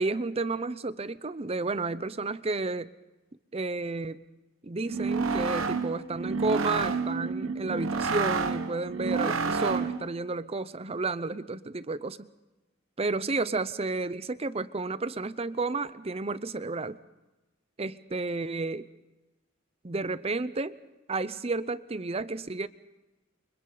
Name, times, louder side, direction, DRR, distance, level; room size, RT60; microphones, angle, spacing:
voice 1, 0.0-2.9 3.5-4.2 4.6-12.3 13.0-17.0 17.8-18.9 19.8-20.8 21.1-22.7, right 3 dB, 30° right, 14 dB, 0.7 m, -31 dB
sound 1, 4.8-10.1, right 4 dB, 80° right, 1.1 m, -29 dB
30.0 x 24.5 x 4.0 m, 1.1 s
head